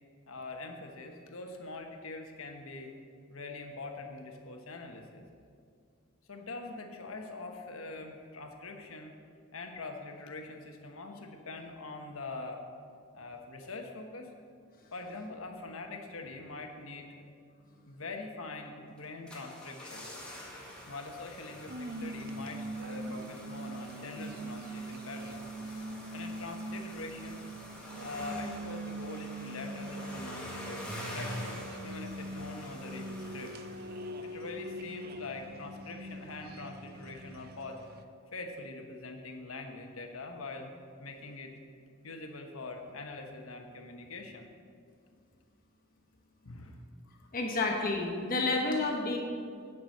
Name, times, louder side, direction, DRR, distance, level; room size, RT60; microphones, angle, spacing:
voice 1, 0.3-2.9 3.3-5.2 6.3-9.2 9.5-12.6 13.1-14.3 14.9-17.2 17.9-20.1 20.9-27.5 28.0-33.6 34.2-37.8 38.3-40.7 41.0-41.5 42.0-44.5 46.4-47.3, left 3 dB, 75° left, 4 dB, 1.1 m, -44 dB
sound 1, 19.0-34.5 34.7-34.8, equal, 5° left, 1.7 m, -46 dB
sound 2, 20.4-38.0, right 1 dB, 45° right, 0.6 m, -42 dB
voice 2, 47.3-49.2, left 3 dB, 40° left, 1 dB, 1.1 m, -30 dB
9.2 x 6.1 x 7.1 m, 2.3 s
head